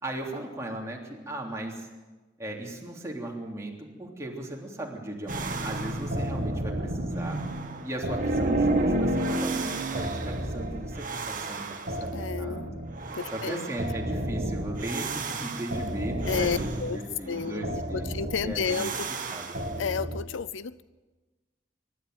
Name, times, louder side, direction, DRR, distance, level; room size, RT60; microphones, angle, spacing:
voice 1, 0.0-1.9 2.4-7.4 7.8-12.7 13.3-18.2 18.4-19.6, right 1 dB, 15° right, -1 dB, 3.2 m, -37 dB
sound 1, 5.3-20.2, right 1 dB, 45° right, 1.9 m, -31 dB
voice 2, 12.1-12.8 13.1-13.7 16.3-17.0 17.3-18.9 19.8-20.8, left 5 dB, 80° left, 17 dB, 0.6 m, -31 dB
24.0 x 11.5 x 9.4 m, 1.2 s
head